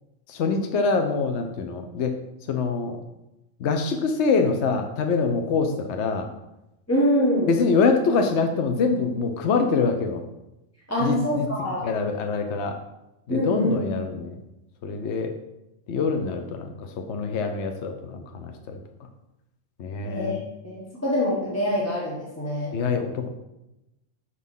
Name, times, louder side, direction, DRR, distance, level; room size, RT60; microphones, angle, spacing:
voice 1, 0.3-2.2 2.5-3.0 3.6-6.3 7.5-10.2 11.0-12.8 13.3-14.3 14.8-15.3 15.9-18.8 19.8-20.4 22.7-23.3, left 4 dB, 65° left, 5 dB, 0.9 m, -25 dB
voice 2, 6.9-7.5 10.9-11.9 13.3-14.2 20.0-20.4 20.6-22.8, equal, 10° left, -5 dB, 1.2 m, -25 dB
6.3 x 4.1 x 5.4 m, 0.92 s
omnidirectional pair, 1.3 m